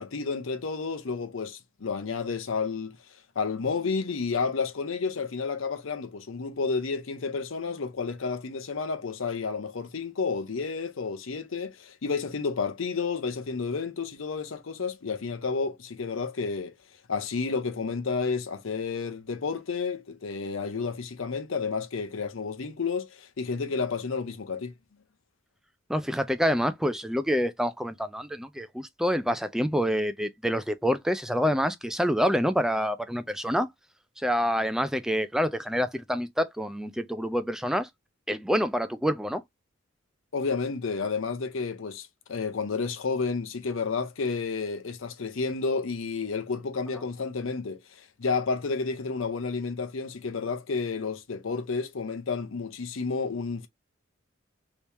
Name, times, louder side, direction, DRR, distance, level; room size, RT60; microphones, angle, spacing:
voice 1, 0.0-16.7 17.1-24.7 40.3-53.7, left 4 dB, 75° left, 0.7 m, -31 dB
voice 2, 25.9-33.7 34.2-37.9 38.3-39.4, equal, 5° right, 0.3 m, -27 dB
3.0 x 2.7 x 3.2 m
head